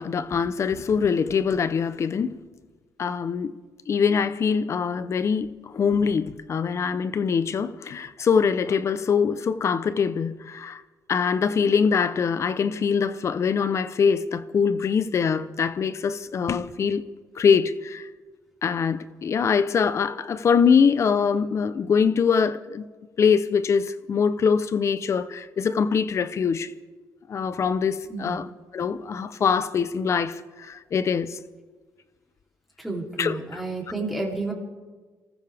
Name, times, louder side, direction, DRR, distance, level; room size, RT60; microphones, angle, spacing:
voice 1, 0.0-2.3 3.0-3.5 3.9-10.8 11.1-17.0 17.4-18.1 18.6-22.9 23.2-26.7 27.3-31.4 33.2-33.6, left 6 dB, 45° left, 0.8 m, -23 dB
voice 2, 28.1-28.4 32.8-34.5, right 2 dB, ahead, 3.4 m, -31 dB
28.0 x 14.5 x 3.5 m
cardioid pair, 95°, 7 cm